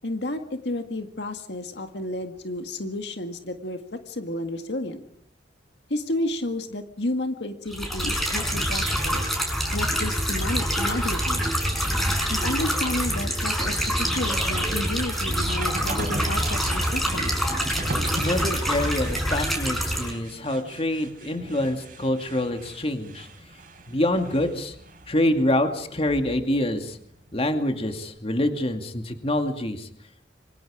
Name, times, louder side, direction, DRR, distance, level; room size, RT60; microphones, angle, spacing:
voice 1, 0.0-3.8 4.1-5.0 5.9-9.3 9.7-11.5 12.3-17.5, left 1 dB, 70° left, 6 dB, 1.9 m, -31 dB
sound 1, 7.7-20.1, equal, ahead, 5.7 m, -26 dB
sound 2, 12.2-28.1, right 1 dB, 50° right, 4.6 m, -39 dB
voice 2, 18.1-23.3 23.9-24.8 25.1-27.0 27.3-29.9, left 1 dB, 35° left, 6 dB, 2.3 m, -26 dB
27.5 x 24.5 x 5.0 m, 0.64 s
head